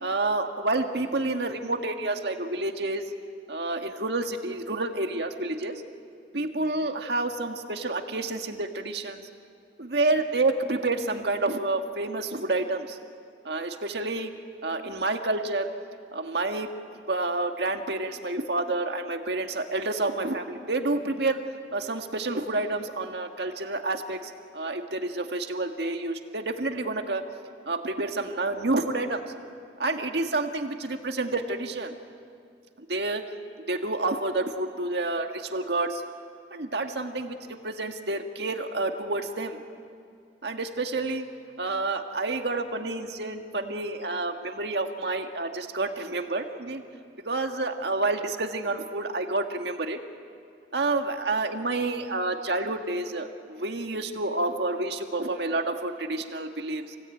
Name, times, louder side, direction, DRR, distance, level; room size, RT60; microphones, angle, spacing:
voice 1, 0.0-3.0 3.5-5.8 6.3-9.2 9.8-13.0 13.5-14.3 14.6-15.7 16.1-16.7 17.1-21.4 21.7-27.2 27.7-29.2 29.8-31.9 32.9-33.2 33.7-36.0 36.5-37.4 37.6-39.6 40.4-41.3 41.6-46.8 47.3-50.0 50.7-57.0, right 2 dB, 70° right, 5 dB, 1.7 m, -29 dB
28.0 x 18.5 x 9.1 m, 2.3 s
head